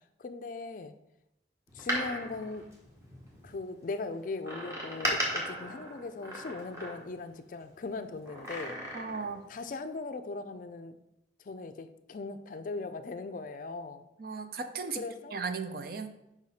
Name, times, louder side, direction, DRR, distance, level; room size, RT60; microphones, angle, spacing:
voice 1, 0.2-1.0 1.7-2.7 3.4-8.8 9.5-11.0 11.5-14.1 15.0-15.3, left 3 dB, 45° left, 10 dB, 0.4 m, -39 dB
Door, 1.7-3.5 4.4-7.3 8.2-9.4 9.7-9.8, equal, 15° right, 1.3 m, -36 dB
voice 2, 8.9-9.5 14.2-15.0 15.3-16.1, right 4 dB, 55° right, 8 dB, 0.5 m, -36 dB
6.5 x 4.9 x 4.2 m, 0.87 s
head